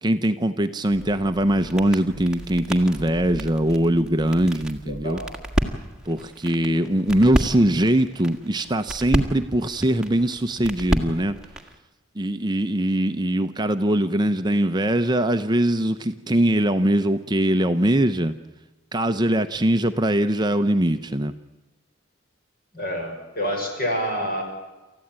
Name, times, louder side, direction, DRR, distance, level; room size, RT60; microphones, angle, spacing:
voice 1, 0.0-5.2 6.1-11.3 12.2-18.4 18.9-21.3, right 1 dB, 20° right, 8 dB, 0.7 m, -22 dB
sound 1, 0.9-11.8, equal, 5° right, 1.7 m, -31 dB
voice 2, 4.8-5.4 22.7-24.4, equal, 45° left, 3 dB, 5.7 m, -28 dB
29.0 x 14.5 x 8.9 m, 1.2 s
head